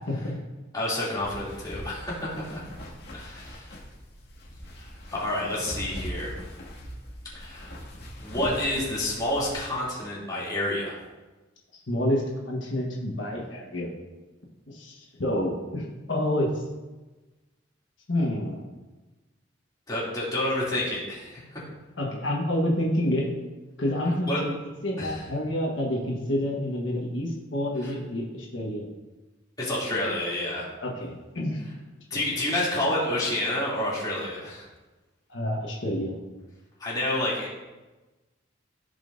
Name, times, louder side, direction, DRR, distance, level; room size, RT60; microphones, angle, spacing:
voice 1, 0.7-2.6 3.1-3.7 4.8-6.3 7.3-7.8 8.2-11.0 19.9-21.6 24.3-24.4 25.0-25.3 27.8-27.9 29.6-30.7 32.1-34.7 36.8-37.5, left 1 dB, 20° left, -7 dB, 2.8 m, -29 dB
sound 1, 1.2-9.6, equal, 55° left, 2.2 m, -41 dB
voice 2, 11.9-13.9 14.7-16.5 18.1-18.6 22.0-23.3 23.8-24.5 24.8-28.9 30.8-31.6 32.1-32.2 35.3-36.1, left 1 dB, 75° left, -2 dB, 1.4 m, -28 dB
15.0 x 5.3 x 2.6 m, 1.2 s
head